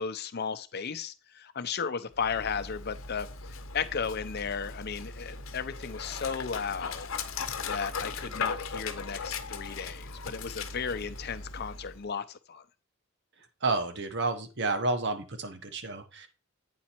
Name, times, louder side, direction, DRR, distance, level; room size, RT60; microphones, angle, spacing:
voice 1, 0.0-7.1 7.7-12.6, left 6 dB, 55° left, 0.7 m, -35 dB
Dog, 2.1-12.1, left 5 dB, 80° left, 0.9 m, -38 dB
voice 2, 13.6-16.3, right 3 dB, 60° right, 1.1 m, -30 dB
8.6 x 4.1 x 4.4 m
head